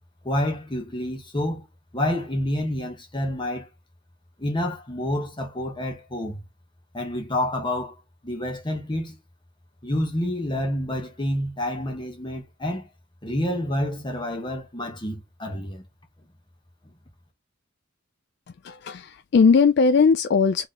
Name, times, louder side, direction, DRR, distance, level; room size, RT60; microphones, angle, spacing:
voice 1, 0.2-1.7 1.9-3.7 4.4-6.4 6.9-7.9 8.2-9.2 9.8-12.9 13.2-15.8, left 1 dB, 25° left, 1.2 m, -28 dB
voice 2, 18.6-20.7, left 5 dB, 55° left, 0.4 m, -19 dB
3.7 x 3.1 x 3.9 m
head